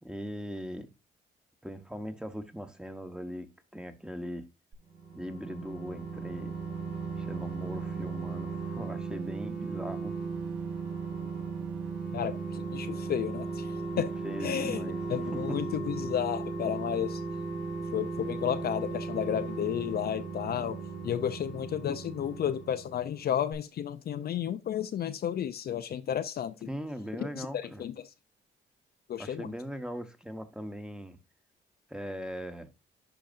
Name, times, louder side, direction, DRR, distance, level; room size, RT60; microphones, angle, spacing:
voice 1, 0.0-0.9 1.6-4.4 5.1-6.5 7.2-10.1 13.9-15.0 15.3-15.6 26.7-27.8 29.2-31.2 31.9-32.7, equal, 5° right, 1.0 m, -40 dB
sound 1, 4.7-23.2 23.5-23.6, right 4 dB, 70° right, 3.9 m, -36 dB
voice 2, 12.1-14.1 14.4-17.2 17.9-20.8 21.0-26.7 27.2-28.1 29.1-29.5, left 9 dB, 50° left, 0.5 m, -32 dB
10.5 x 5.1 x 2.5 m
cardioid pair, 90°, 20 cm